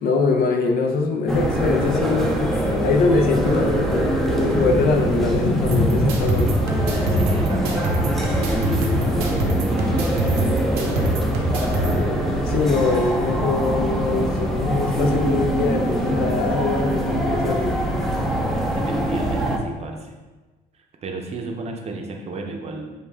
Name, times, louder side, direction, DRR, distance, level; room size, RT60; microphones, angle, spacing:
voice 1, 0.0-6.6 12.4-17.8, left 4 dB, 65° left, 4 dB, 0.6 m, -23 dB
sound 1, 1.3-19.6, right 1 dB, ahead, 0.5 m, -23 dB
Thunder / Rain, 3.8-13.0 13.3-14.1 14.7-15.0 15.3-16.1 16.7-16.8, left 2 dB, 85° left, 1.1 m, -31 dB
sound 2, 5.7-11.9, right 2 dB, 80° right, 0.8 m, -24 dB
voice 2, 7.1-10.5 10.8-11.2 18.7-20.1 21.0-22.9, right 3 dB, 40° right, 2 dB, 0.6 m, -34 dB
5.3 x 2.3 x 3.4 m, 1.2 s
cardioid pair, 110°, 17 cm